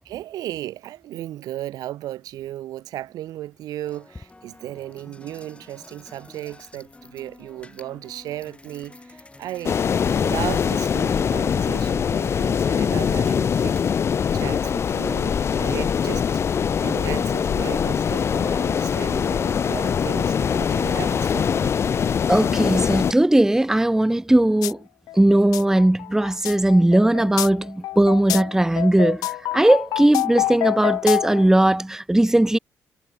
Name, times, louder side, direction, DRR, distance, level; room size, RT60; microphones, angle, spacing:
voice 1, 0.0-9.8 10.1-13.8 14.3-16.3 16.8-22.1, right 13 dB, 80° right, 3.1 m, -35 dB
sound 1, 2.5-2.6 3.3-14.1, left 2 dB, 20° left, 4.2 m, -48 dB
sound 2, 9.6-23.1, left 7 dB, 45° left, 0.4 m, -22 dB
voice 2, 22.3-24.8 25.1-32.6, right 1 dB, 10° right, 0.8 m, -18 dB
sound 3, 24.6-24.7 25.1-31.5, left 16 dB, 90° left, 1.8 m, -27 dB
cardioid pair, 75°, 6 cm